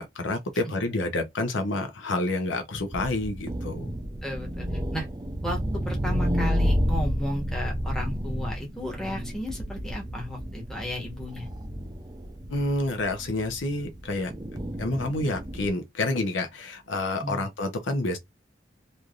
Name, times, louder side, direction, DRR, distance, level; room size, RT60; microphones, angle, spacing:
voice 1, 0.0-3.9 12.5-14.3 14.8-18.2, left 2 dB, 75° left, 0.7 m, -28 dB
sound 1, 2.9-15.7, equal, 20° right, 0.5 m, -31 dB
voice 2, 4.2-4.7 4.9-5.1 5.4-5.6 5.8-11.5 17.2-17.5, equal, 5° left, 1.0 m, -34 dB
3.1 x 2.6 x 2.4 m
head